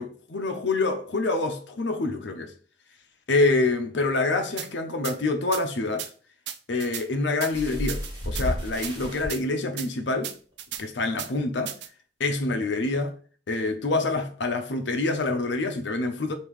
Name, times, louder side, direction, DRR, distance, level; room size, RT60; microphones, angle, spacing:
voice 1, 0.0-2.5 3.3-6.1 6.7-10.3 10.8-11.7 12.2-13.1 13.5-16.3, left 3 dB, 80° left, 0.7 m, -26 dB
sound 1, 4.6-4.7 5.0-5.2 5.5-5.6 6.0-6.1 6.5-7.0 7.4-7.5 7.9-8.5 8.8-8.9 9.3-9.4 9.8-9.9 10.2-10.8 11.2-11.3 11.7-11.9, right 10 dB, 70° right, 0.4 m, -34 dB
sound 2, 7.5-9.3 10.2-10.3 10.7-10.8, equal, 30° right, 1.8 m, -31 dB
5.2 x 2.9 x 3.2 m
head